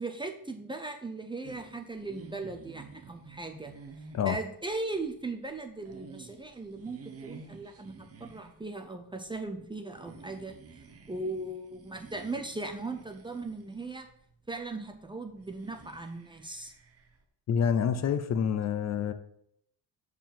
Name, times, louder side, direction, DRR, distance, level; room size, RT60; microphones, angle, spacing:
voice 1, 0.0-3.7 4.3-10.5 11.1-14.1 14.5-16.7, right 2 dB, 10° right, 4 dB, 0.5 m, -38 dB
sound 1, 1.4-17.2, right 4 dB, 35° right, 0.8 m, -52 dB
voice 2, 17.5-19.1, left 7 dB, 45° left, 11 dB, 0.5 m, -27 dB
7.1 x 4.7 x 5.8 m, 0.71 s
wide cardioid pair, 180°, 40 cm